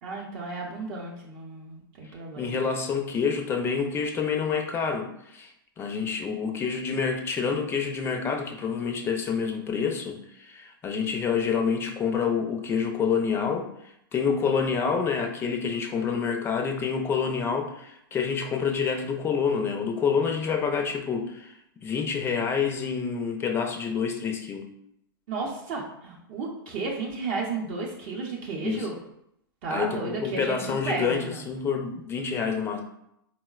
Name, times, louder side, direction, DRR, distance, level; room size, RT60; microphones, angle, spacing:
voice 1, 0.0-2.7 25.3-28.9 29.6-31.5, right 3 dB, 50° right, -2 dB, 0.6 m, -33 dB
voice 2, 2.4-13.7 14.1-21.5 21.8-24.6 28.6-28.9 29.7-32.8, left 6 dB, 20° left, 3 dB, 0.4 m, -27 dB
3.9 x 2.1 x 2.3 m, 0.76 s
hypercardioid pair, 125°, 12 cm